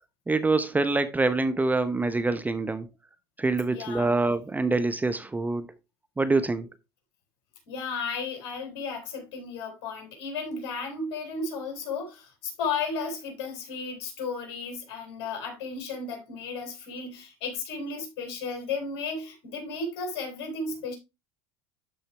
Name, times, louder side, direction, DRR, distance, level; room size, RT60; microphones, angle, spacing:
voice 1, 0.3-2.9 3.4-5.8 6.2-6.7, right 3 dB, 10° right, 0.8 m, -25 dB
voice 2, 3.7-4.1 7.7-21.0, left 4 dB, 70° left, 4.4 m, -34 dB
12.5 x 4.3 x 3.3 m
hypercardioid pair, 95°, 13 cm